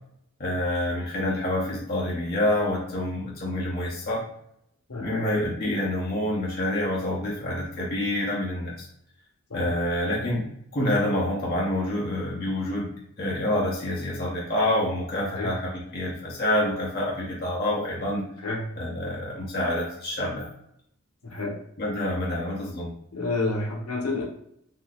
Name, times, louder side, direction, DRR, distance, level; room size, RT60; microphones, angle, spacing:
voice 1, 0.4-4.2 5.0-8.8 9.5-12.9 13.2-18.2 18.8-20.5 21.8-22.9, left 1 dB, 45° left, -5 dB, 0.7 m, -27 dB
voice 2, 4.9-5.2 9.5-9.7 15.2-15.5 18.4-18.6 21.2-21.6 23.1-24.2, left 3 dB, 80° left, -2 dB, 0.9 m, -29 dB
3.7 x 2.7 x 2.3 m, 0.72 s
head